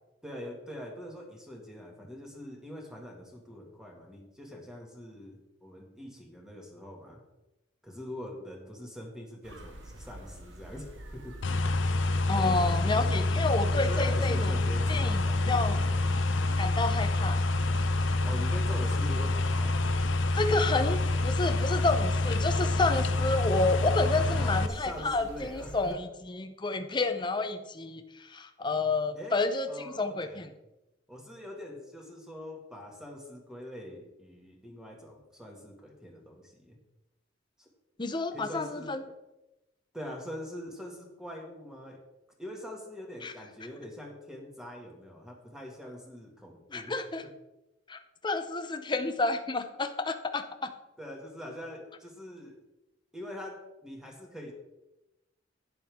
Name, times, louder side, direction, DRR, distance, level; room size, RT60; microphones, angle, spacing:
voice 1, 0.2-7.2 7.8-11.4 12.3-13.3 13.9-16.0 18.2-20.1 24.3-26.0 29.1-29.4 29.7-30.4 31.1-36.8 37.6-37.7 38.3-38.9 39.9-42.0 42.4-47.0 51.0-52.6 53.1-54.5, left 1 dB, 5° right, 0 dB, 2.0 m, -43 dB
sound 1, 9.4-26.0, right 1 dB, 75° right, 1.5 m, -46 dB
sound 2, 11.4-24.7, left 2 dB, 80° left, 0.7 m, -27 dB
voice 2, 12.3-14.5 14.9-15.8 16.6-17.4 20.4-29.7 30.0-30.5 38.0-39.0 43.2-43.3 46.7-47.2 47.9-50.7, left 3 dB, 25° left, 7 dB, 0.6 m, -30 dB
11.5 x 9.5 x 3.6 m, 0.97 s
head